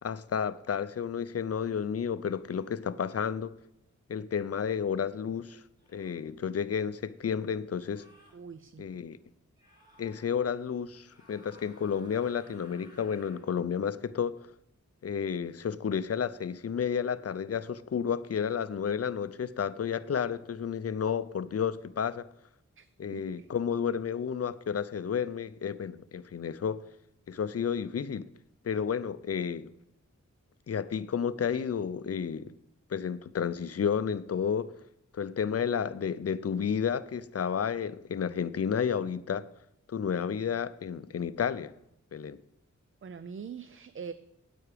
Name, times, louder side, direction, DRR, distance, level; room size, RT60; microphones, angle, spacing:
voice 1, 0.0-3.5 4.1-5.6 5.9-8.1 8.8-9.2 10.0-14.4 15.0-22.3 23.0-26.8 27.3-28.3 28.6-29.7 30.7-32.5 32.9-34.7 35.1-39.5 39.9-41.7 42.1-42.4, left 7 dB, 50° left, 0.5 m, -31 dB
sound 1, 5.8-6.2 7.7-8.4 9.5-10.3 11.0-13.5, equal, 15° right, 4.1 m, -59 dB
voice 2, 8.3-8.8 22.8-22.9 23.1-23.5 43.0-44.1, right 6 dB, 45° right, 0.4 m, -43 dB
9.3 x 8.6 x 5.0 m
wide cardioid pair, 100°, 30 cm